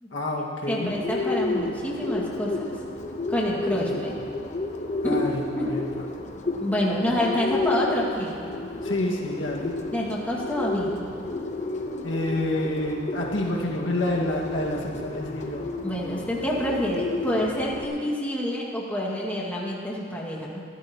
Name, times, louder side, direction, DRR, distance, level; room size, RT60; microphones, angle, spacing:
voice 1, 0.1-0.9 3.8-3.9 5.0-5.8 8.8-9.7 12.0-15.7, left 1 dB, 70° left, -2 dB, 1.7 m, -28 dB
voice 2, 0.7-2.6 3.3-4.1 5.0-5.2 5.6-5.8 6.6-8.5 9.9-11.0 15.8-20.6, equal, 10° left, -4 dB, 1.9 m, -27 dB
Bird, 0.8-17.9, left 2 dB, 40° left, 0.9 m, -31 dB
24.0 x 13.0 x 2.9 m, 2.3 s
head